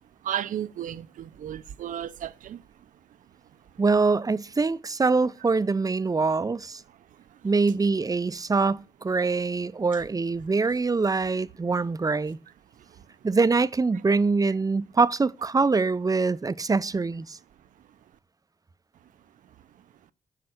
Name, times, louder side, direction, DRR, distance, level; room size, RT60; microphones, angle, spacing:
voice 1, 0.2-2.6 7.3-7.4 12.8-13.1, right 10 dB, 75° right, 0.6 m, -34 dB
voice 2, 3.8-6.8 7.4-12.4 13.2-17.4, right 4 dB, 25° right, 0.5 m, -24 dB
9.5 x 5.7 x 6.4 m
supercardioid pair, 45°, 14 cm